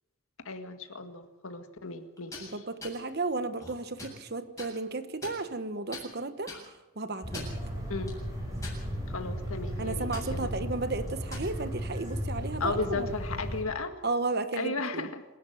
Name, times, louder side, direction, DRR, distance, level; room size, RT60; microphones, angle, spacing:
voice 1, 0.5-2.5 7.9-8.2 9.1-10.7 12.6-14.0 14.6-15.2, left 3 dB, 75° left, 7 dB, 1.9 m, -35 dB
sound 1, 2.2-2.5 2.8-3.0 3.5-4.2 4.6-4.7 5.2-5.6 5.9-6.0 6.5-6.6 7.2-7.6 8.1-8.2 8.6-9.1 9.5-9.7 10.1-10.3 11.1-11.5, left 2 dB, 15° left, 7.6 m, -42 dB
voice 2, 2.4-6.5 7.0-7.5 9.8-13.1 14.0-15.1, right 3 dB, 45° right, 11 dB, 1.2 m, -33 dB
sound 2, 7.2-13.6, equal, 15° right, 5.6 m, -35 dB
27.0 x 11.5 x 9.3 m, 1.2 s
head